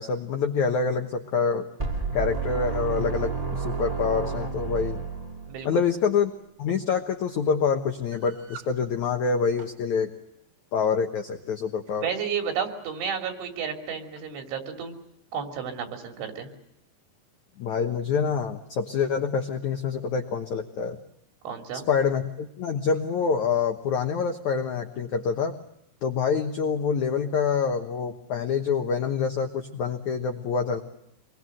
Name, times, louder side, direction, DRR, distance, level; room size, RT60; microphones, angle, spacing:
voice 1, 0.0-1.7 2.1-5.0 5.6-6.3 6.6-10.1 10.7-12.1 17.6-21.0 21.9-25.6 26.0-30.8, left 6 dB, 85° left, 5 dB, 1.6 m, -26 dB
sound 1, 1.8-5.8, right 5 dB, 35° right, 0.6 m, -30 dB
voice 2, 5.5-5.8 12.0-15.0 15.3-16.5 21.5-21.9, right 7 dB, 85° right, 4 dB, 5.3 m, -32 dB
sound 2, 8.1-8.8 9.4-9.8 10.8-11.0 11.7-12.0 12.9-13.0 13.3-13.4 14.2-14.3, right 7 dB, 65° right, 3.8 m, -48 dB
26.5 x 21.5 x 7.7 m, 0.80 s
omnidirectional pair, 5.3 m